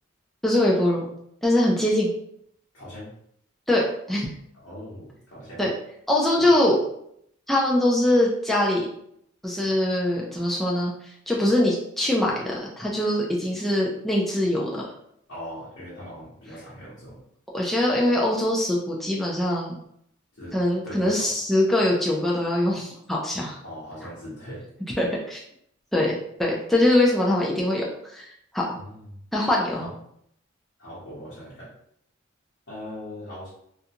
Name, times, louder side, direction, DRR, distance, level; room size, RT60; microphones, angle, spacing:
voice 1, 0.4-1.1 1.4-2.1 3.7-4.3 5.6-5.7 6.1-6.8 7.5-8.9 9.4-10.9 11.3-14.8 17.5-19.8 20.5-23.6 25.0-25.4 25.9-26.1 26.4-27.9 28.1-28.2 28.5-28.8 29.3-29.9, left 1 dB, ahead, -4 dB, 0.3 m, -22 dB
voice 2, 2.7-3.1 4.6-5.7 6.4-6.5 15.3-17.2 20.3-21.3 23.6-24.6 28.7-29.2 29.8-29.9 30.8-31.7 32.7-33.5, equal, 60° left, -10 dB, 0.9 m, -40 dB
2.5 x 2.2 x 2.7 m, 0.72 s
head